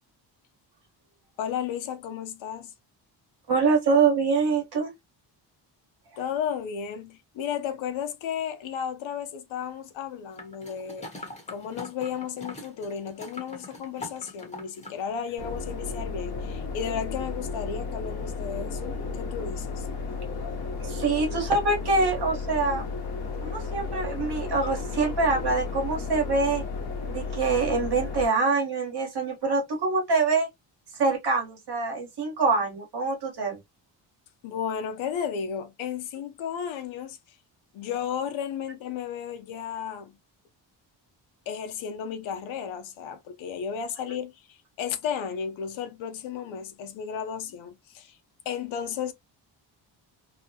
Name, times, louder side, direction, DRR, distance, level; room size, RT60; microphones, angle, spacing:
voice 1, 1.4-2.7 6.2-19.9 34.4-37.2 37.7-40.2 41.5-48.2 48.5-49.1, left 8 dB, 85° left, 0.7 m, -33 dB
voice 2, 3.5-4.9 20.8-22.8 23.4-26.6 27.1-30.5 31.0-33.6, right 4 dB, 60° right, 1.4 m, -25 dB
sound 1, 10.4-15.0 15.4-15.5, left 2 dB, 15° left, 1.0 m, -42 dB
sound 2, 15.4-28.3, left 4 dB, 55° left, 1.0 m, -33 dB
2.9 x 2.2 x 2.7 m
cardioid pair, 110°, 45 cm